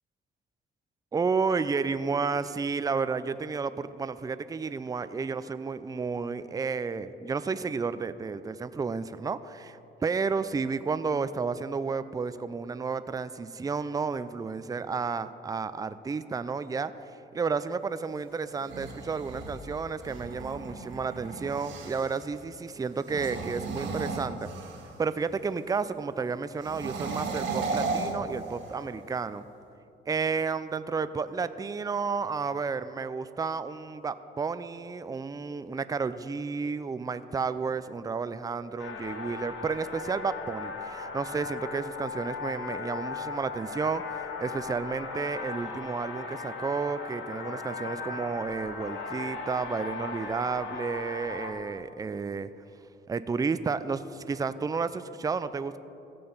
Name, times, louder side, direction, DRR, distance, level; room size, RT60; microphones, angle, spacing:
voice 1, 1.1-16.9 17.3-24.5 25.0-29.5 30.1-52.5 53.1-55.8, right 5 dB, 20° right, 13 dB, 0.4 m, -31 dB
sound 1, 18.5-22.2 23.0-25.0 26.6-28.9, right 3 dB, 70° right, 1.6 m, -35 dB
sound 2, 38.8-51.5, left 4 dB, 80° left, 1.3 m, -37 dB
15.5 x 6.8 x 5.5 m, 2.8 s
cardioid pair, 90°, 20 cm